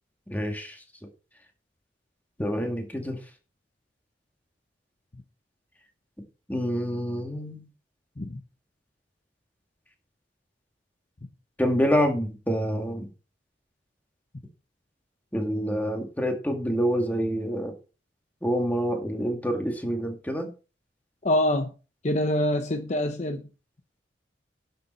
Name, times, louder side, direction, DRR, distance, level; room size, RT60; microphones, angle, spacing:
voice 1, 0.3-0.8 2.4-3.2 6.5-7.7 11.6-13.1 15.3-17.7 18.4-20.5, equal, 10° left, 2.1 m, -27 dB
voice 2, 21.2-21.7 22.0-23.4, left 1 dB, 40° left, 0.8 m, -25 dB
11.5 x 6.8 x 4.3 m
head